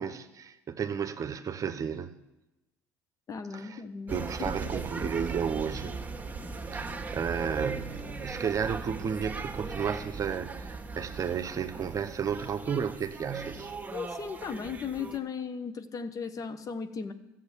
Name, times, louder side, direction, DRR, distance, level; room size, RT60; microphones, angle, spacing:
voice 1, 0.0-2.2 3.5-3.8 4.1-6.0 6.7-13.7, right 7 dB, 40° right, 1.0 m, -33 dB
voice 2, 3.3-4.7 13.9-17.1, left 6 dB, 40° left, 1.1 m, -37 dB
sound 1, 4.1-15.2, right 4 dB, 15° right, 1.8 m, -38 dB
13.5 x 7.6 x 8.4 m
hypercardioid pair, 65°, 9 cm